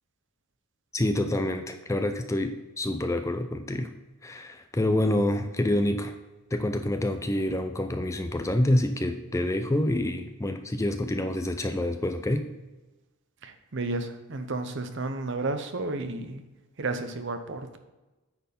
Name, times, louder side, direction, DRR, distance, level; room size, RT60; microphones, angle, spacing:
voice 1, 0.9-3.9 4.2-6.2 6.5-12.5, left 1 dB, 15° left, 7 dB, 0.4 m, -27 dB
voice 2, 13.4-16.4 16.8-17.8, right 2 dB, 55° right, 8 dB, 0.8 m, -32 dB
9.5 x 4.5 x 5.3 m, 1.1 s
head